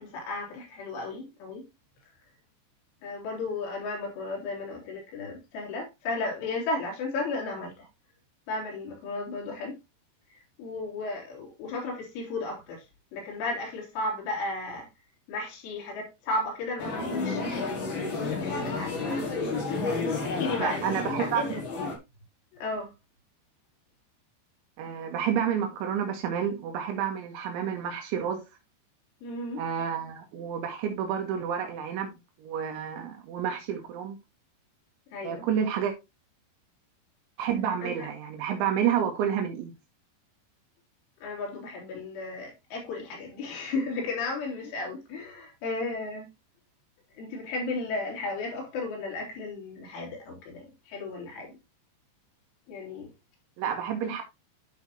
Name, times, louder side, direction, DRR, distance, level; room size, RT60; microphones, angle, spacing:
voice 1, 0.0-1.6 3.0-7.9 8.5-9.8 10.3-12.8 13.1-14.9 15.3-17.8 18.1-19.4 20.0-21.1 21.4-21.6 22.5-22.9 29.2-29.6 35.1-35.5 37.8-38.1 41.2-46.3 47.2-51.6 52.7-53.1, left 3 dB, 90° left, 5.7 m, -34 dB
sound 1, 16.8-22.0, left 3 dB, 45° left, 1.6 m, -31 dB
voice 2, 20.6-21.6 24.8-28.4 29.6-32.1 32.4-34.2 35.2-35.9 37.4-39.7 53.6-54.2, right 8 dB, 80° right, 3.6 m, -29 dB
11.5 x 5.8 x 3.0 m
omnidirectional pair, 5.4 m